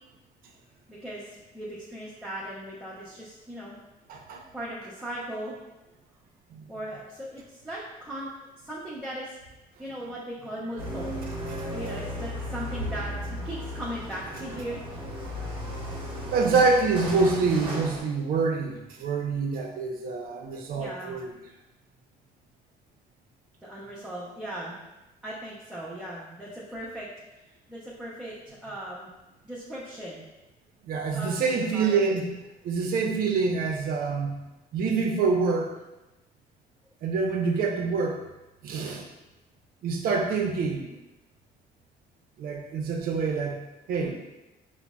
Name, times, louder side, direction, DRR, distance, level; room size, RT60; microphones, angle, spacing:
voice 1, 0.9-1.2 1.5-3.7 4.5-5.6 6.7-8.3 8.6-9.3 9.8-11.1 11.7-14.8 16.4-16.7 20.8-21.2 23.6-24.8 25.2-27.1 27.7-29.1 29.4-30.2 31.1-32.2, equal, 5° right, -8 dB, 0.5 m, -38 dB
voice 2, 4.1-4.4 6.5-6.6 16.3-21.3 30.8-32.4 32.6-34.4 34.7-35.8 37.0-38.2 38.6-39.1 39.8-40.9 42.4-43.6 43.9-44.1, right 4 dB, 60° right, 2 dB, 0.5 m, -26 dB
sound 1, 10.8-18.0, equal, 30° right, 0.8 m, -35 dB
3.9 x 2.0 x 2.2 m, 1.0 s
cardioid pair, 110°, 17 cm